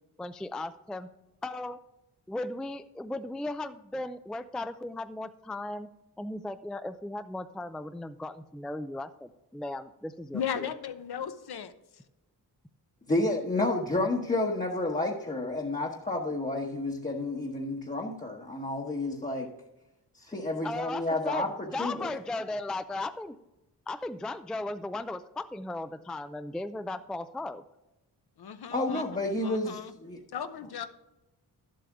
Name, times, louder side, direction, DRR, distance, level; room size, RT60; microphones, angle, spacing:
voice 1, 0.2-1.1 1.4-1.8 2.3-5.9 6.2-10.7 20.3-23.4 23.9-27.6, left 2 dB, ahead, 10 dB, 0.3 m, -36 dB
voice 2, 10.3-11.7 28.4-29.9 30.3-30.9, left 8 dB, 70° left, 10 dB, 0.9 m, -36 dB
voice 3, 13.1-19.5 20.2-22.1 28.7-30.2, left 2 dB, 20° left, -1 dB, 1.0 m, -30 dB
11.5 x 7.6 x 3.5 m, 0.97 s
wide cardioid pair, 110°, 40 cm